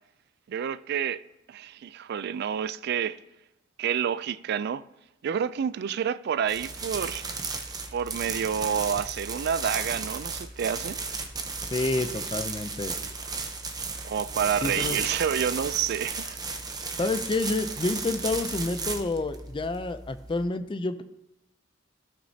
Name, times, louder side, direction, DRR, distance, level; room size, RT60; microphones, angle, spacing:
voice 1, 0.5-1.2 1.5-3.2 3.8-4.8 5.2-7.3 7.9-11.0 14.0-16.4, right 8 dB, 55° right, 0.3 m, -29 dB
sound 1, 6.4-20.4, right 4 dB, 20° right, 0.7 m, -34 dB
voice 2, 11.7-13.0 14.6-15.0 17.0-21.0, left 2 dB, 25° left, 0.5 m, -29 dB
16.0 x 5.9 x 2.8 m
head